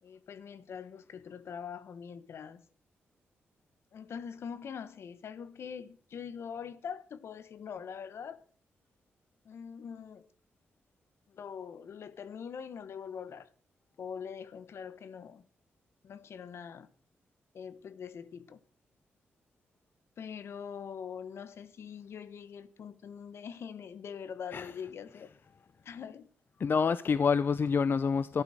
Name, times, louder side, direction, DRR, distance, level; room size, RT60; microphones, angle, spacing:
voice 1, 0.0-2.6 3.9-8.4 9.4-10.3 11.3-13.5 14.0-15.4 16.0-16.9 17.5-18.6 20.2-25.3 25.8-26.3, left 7 dB, 70° left, 1.2 m, -43 dB
voice 2, 26.6-28.4, left 5 dB, 55° left, 0.6 m, -27 dB
12.5 x 11.5 x 6.4 m
cardioid pair, 75°, 4 cm